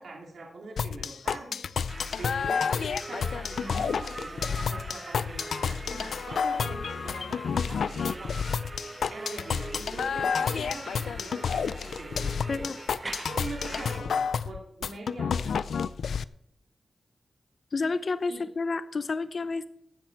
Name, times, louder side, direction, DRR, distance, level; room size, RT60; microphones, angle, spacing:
voice 1, 0.0-8.4 9.1-12.6 13.3-15.6 18.3-18.5, right 3 dB, 75° right, -1 dB, 2.4 m, -43 dB
sound 1, 0.8-16.2, left 6 dB, 90° left, 0.3 m, -30 dB
sound 2, 1.9-14.0, right 2 dB, 30° right, 0.7 m, -42 dB
voice 2, 17.7-19.7, left 3 dB, 55° left, 12 dB, 0.7 m, -30 dB
15.0 x 8.6 x 4.6 m, 0.75 s
cardioid pair, 75°, 0 cm